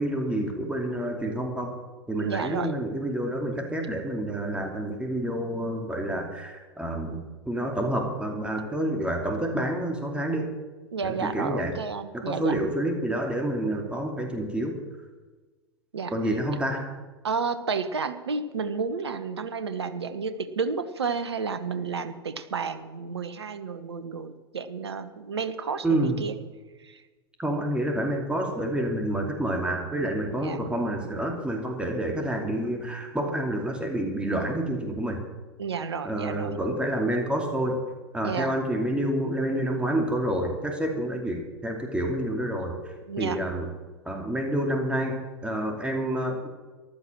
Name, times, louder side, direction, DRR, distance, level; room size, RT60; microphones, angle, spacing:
voice 1, 0.0-1.8 2.1-10.5 11.0-11.7 12.1-14.8 16.1-16.9 25.8-26.2 27.4-35.2 36.0-37.9 38.1-43.7 44.0-46.5, right 1 dB, 5° right, 2 dB, 2.6 m, -28 dB
voice 2, 2.2-2.8 10.9-12.5 15.9-16.1 17.2-26.4 26.8-27.0 30.3-30.6 35.6-36.6 38.2-38.5 43.1-43.4, right 5 dB, 75° right, 12 dB, 1.3 m, -31 dB
14.5 x 12.0 x 6.2 m, 1.3 s
figure-of-eight pair, 90°, 14 cm